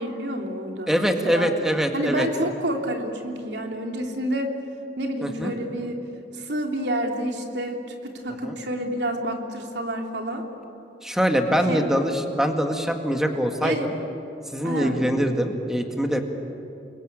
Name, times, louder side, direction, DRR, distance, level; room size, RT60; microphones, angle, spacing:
voice 1, 0.0-1.5 1.9-4.5 5.0-6.0 6.3-10.5 11.7-11.9 13.6-13.9 14.6-15.0, right 1 dB, 75° right, 3 dB, 3.2 m, -29 dB
voice 2, 0.9-2.3 5.2-5.5 8.4-8.5 11.0-13.9 14.5-16.2, equal, 5° right, 4 dB, 1.9 m, -23 dB
29.0 x 23.0 x 8.8 m, 2.9 s
head